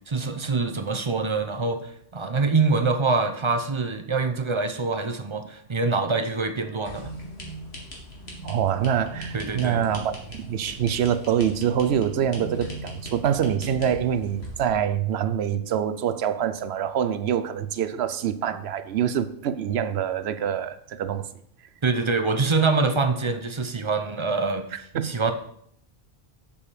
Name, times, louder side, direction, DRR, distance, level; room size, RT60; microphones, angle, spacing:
voice 1, 0.1-7.1 9.3-9.8 21.8-25.3, right 4 dB, 30° right, 0.7 m, -25 dB
sound 1, 6.8-14.7, right 1 dB, 80° left, 2.3 m, -39 dB
voice 2, 8.4-21.3 24.9-25.1, right 9 dB, 80° right, 0.9 m, -25 dB
7.2 x 7.2 x 4.9 m
omnidirectional pair, 1.1 m